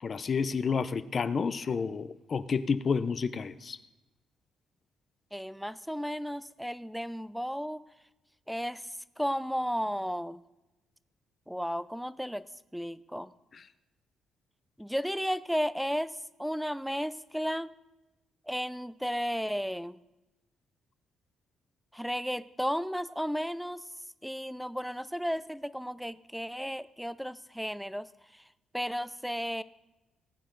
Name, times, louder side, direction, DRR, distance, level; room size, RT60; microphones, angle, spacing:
voice 1, 0.0-3.8 13.5-13.6, left 5 dB, 45° left, 0.6 m, -30 dB
voice 2, 5.3-7.8 8.5-10.4 11.5-12.5 12.7-13.3 14.8-17.7 18.5-20.0 21.9-23.8 24.2-28.4 28.7-29.6, equal, ahead, 0.5 m, -34 dB
19.0 x 8.8 x 3.9 m
cardioid pair, 90°, 0 cm